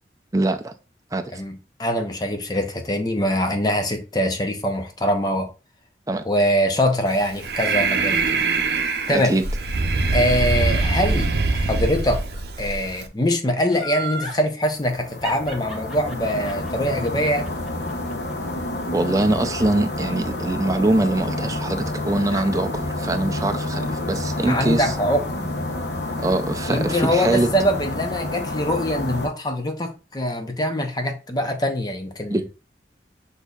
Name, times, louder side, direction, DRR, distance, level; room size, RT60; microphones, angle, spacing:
voice 1, 0.3-0.7 1.1-1.2 6.1-6.3 9.1-9.4 18.9-24.9 26.2-27.5 32.3-32.5, right 2 dB, 20° right, 0.4 m, -23 dB
voice 2, 1.3-5.5 6.2-8.5 9.1-9.3 10.1-12.2 12.6-17.6 22.3-22.4 24.5-25.5 26.7-32.5, equal, 20° left, 0.6 m, -23 dB
Breathing, 7.1-13.1, right 3 dB, 70° right, 0.6 m, -23 dB
Laughter, 13.7-14.4 15.2-18.3 18.7-18.8, right 2 dB, ahead, 1.3 m, -33 dB
sound 1, 14.7-29.3, left 2 dB, 85° left, 0.9 m, -29 dB
8.0 x 2.7 x 2.3 m
head